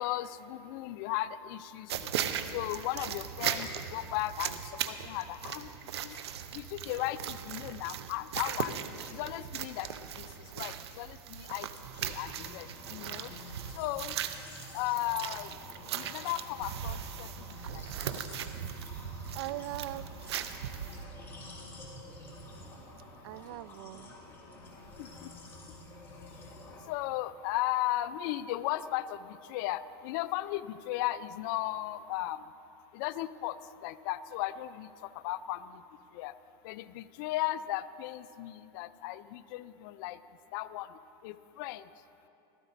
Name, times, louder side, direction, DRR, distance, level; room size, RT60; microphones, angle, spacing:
voice 1, 0.0-2.1 2.5-4.6 4.9-5.7 6.0-6.2 6.5-8.7 9.1-9.9 10.2-10.3 10.6-11.7 12.0-13.3 13.7-14.1 14.7-15.5 15.9-17.3 17.7-17.8 25.0-25.3 26.9-29.2 29.5-32.4 32.9-33.6 33.8-34.9 35.2-35.6 36.1-36.3 36.6-40.2 40.5-40.9 41.2-41.8, left 15 dB, 55° left, 14 dB, 0.5 m, -35 dB
sound 1, 1.9-21.0, right 9 dB, 85° right, 0.8 m, -38 dB
sound 2, 11.8-26.8, left 1 dB, 15° left, 2.8 m, -49 dB
voice 2, 19.3-20.1 22.3-22.7 23.2-24.2, right 17 dB, 60° right, 18 dB, 0.4 m, -41 dB
16.5 x 13.5 x 4.0 m, 2.9 s
supercardioid pair, 140°, 13 cm